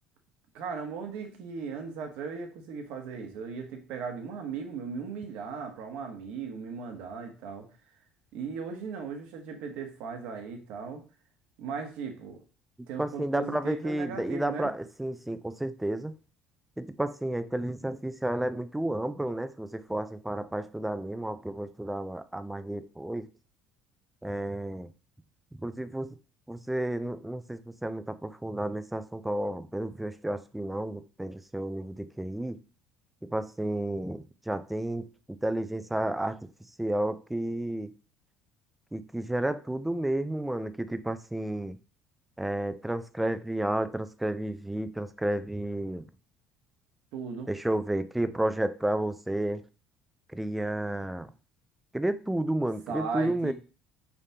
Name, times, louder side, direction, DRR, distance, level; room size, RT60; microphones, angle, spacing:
voice 1, 0.5-7.7 8.3-11.0 11.6-12.4 12.9-14.7 47.1-47.5 52.9-53.5, right 5 dB, 75° right, 4 dB, 1.0 m, -37 dB
voice 2, 13.0-16.1 16.8-23.3 24.2-24.9 25.6-26.1 26.5-32.6 33.2-36.4 36.8-37.9 38.9-41.8 42.4-46.0 47.5-49.6 50.3-51.3 51.9-53.5, right 1 dB, 5° right, 13 dB, 0.3 m, -31 dB
5.0 x 3.5 x 2.7 m, 0.36 s
cardioid pair, 105°, 2 cm